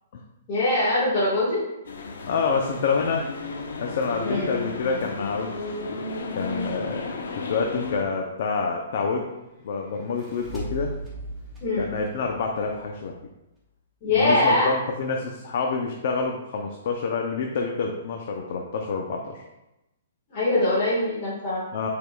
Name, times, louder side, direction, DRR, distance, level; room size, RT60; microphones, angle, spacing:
voice 1, 0.5-1.6 4.2-4.5 11.6-11.9 14.0-14.7 20.3-21.6, left 2 dB, 25° left, -10 dB, 1.6 m, -22 dB
sound 1, 1.8-8.0, left 3 dB, 90° left, 0.9 m, -33 dB
voice 2, 2.3-3.3 3.8-6.0 6.3-7.1 7.5-9.2 9.6-10.9 11.8-13.2 14.1-19.4 21.7-21.9, left 4 dB, 45° left, 1 dB, 0.6 m, -27 dB
sound 2, 9.9-13.3, right 1 dB, 5° right, 1.1 m, -38 dB
8.7 x 4.8 x 2.3 m, 0.95 s
hypercardioid pair, 175°, 0 cm